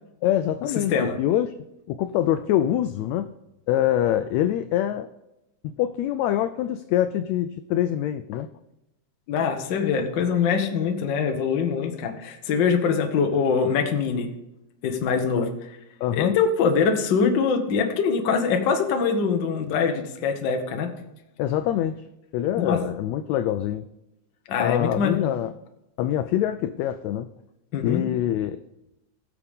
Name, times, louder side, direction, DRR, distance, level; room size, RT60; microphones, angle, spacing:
voice 1, 0.2-1.5 1.9-3.3 3.7-5.1 5.8-8.5 15.4-15.5 16.0-16.4 21.4-22.0 22.3-23.8 24.6-25.5 26.0-27.3 27.8-28.6, left 11 dB, 85° left, 10 dB, 1.6 m, -24 dB
voice 2, 9.3-14.3 14.8-15.5 16.1-20.9 22.6-22.8 24.5-25.3 27.7-28.0, left 6 dB, 60° left, 5 dB, 1.2 m, -23 dB
20.5 x 6.9 x 3.6 m, 0.93 s
omnidirectional pair, 3.6 m